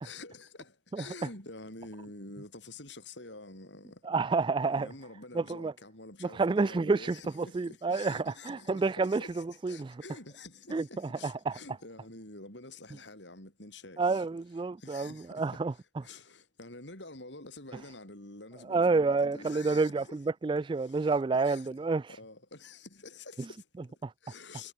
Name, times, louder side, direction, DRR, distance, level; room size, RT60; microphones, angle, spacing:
voice 1, 0.0-4.0 4.7-14.3 14.8-15.6 16.0-20.2 20.8-21.8 22.2-24.7, left 2 dB, 70° left, 7.9 m, -48 dB
voice 2, 4.0-4.9 5.3-5.7 6.2-10.0 10.7-11.6 14.0-15.7 18.7-22.0 24.0-24.1, right 4 dB, 25° right, 0.3 m, -29 dB
head